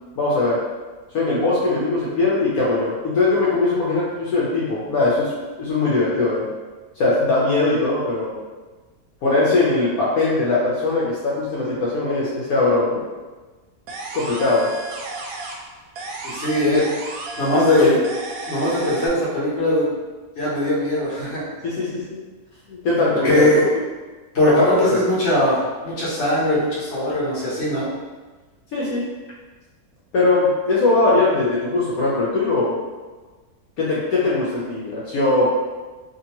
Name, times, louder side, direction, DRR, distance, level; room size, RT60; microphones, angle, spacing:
voice 1, 0.2-0.6 1.1-5.3 5.6-6.5 7.0-8.3 9.2-13.0 14.1-14.7 16.6-16.8 17.5-18.0 21.6-22.2 22.7-23.5 24.5-25.0 28.7-29.1 30.1-32.8 33.8-35.5, left 3 dB, 75° left, -6 dB, 1.1 m, -20 dB
sound 1, 13.9-15.7 16.0-19.1, right 3 dB, 70° right, 0.9 m, -33 dB
voice 2, 16.2-16.8 17.4-18.0 18.5-19.9 20.4-21.4 23.2-23.7 24.3-27.9, left 1 dB, 50° left, -8 dB, 1.2 m, -20 dB
2.8 x 2.6 x 2.8 m, 1.3 s
omnidirectional pair, 1.6 m